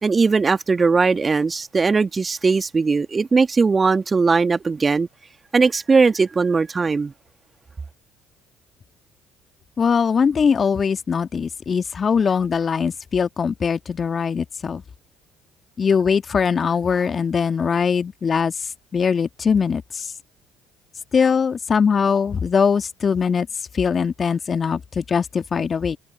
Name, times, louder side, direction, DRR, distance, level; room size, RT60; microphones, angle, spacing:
voice 1, 0.0-5.1 5.5-7.1, right 4 dB, 30° right, 2.0 m, -19 dB
voice 2, 9.8-14.8 15.8-18.5 18.9-20.1 21.1-23.5 23.7-26.0, left 6 dB, 40° left, 1.9 m, -21 dB
figure-of-eight pair, 55°, 0 cm